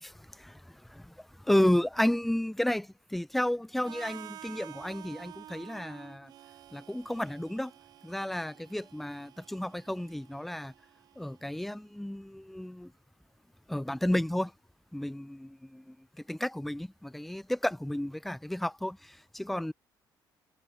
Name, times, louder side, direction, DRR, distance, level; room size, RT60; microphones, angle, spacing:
voice 1, 1.5-6.3 6.7-7.7 8.0-10.7 11.2-12.9 13.7-14.5 14.9-16.0 16.3-19.7, left 1 dB, ahead, 0.3 m, -32 dB
Harmonica, 3.8-11.7, right 12 dB, 60° right, 1.6 m, -51 dB
cardioid pair, 175°, 8 cm